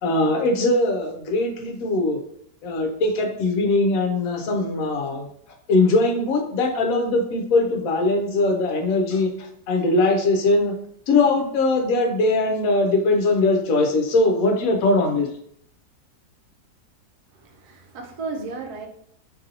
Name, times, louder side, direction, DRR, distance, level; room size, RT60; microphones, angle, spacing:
voice 1, 0.0-2.2 2.6-5.3 5.7-9.3 9.7-10.7 11.1-15.3, left 2 dB, 70° left, 2 dB, 0.9 m, -21 dB
voice 2, 17.3-18.9, right 4 dB, 75° right, 3 dB, 1.1 m, -34 dB
2.9 x 2.6 x 2.7 m, 0.67 s
omnidirectional pair, 1.7 m